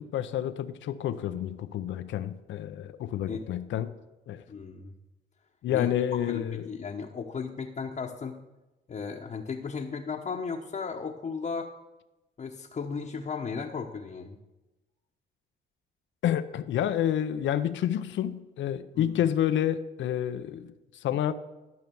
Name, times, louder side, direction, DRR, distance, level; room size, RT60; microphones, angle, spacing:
voice 1, 0.0-3.9 4.3-4.4 5.6-6.7 16.2-21.3, left 10 dB, 70° left, 0.6 m, -29 dB
voice 2, 4.5-4.9 5.7-5.9 6.3-8.4 8.9-11.7 12.4-14.4 18.9-19.2, left 5 dB, 40° left, 1.0 m, -35 dB
12.5 x 5.7 x 7.0 m
cardioid pair, 90°, 20 cm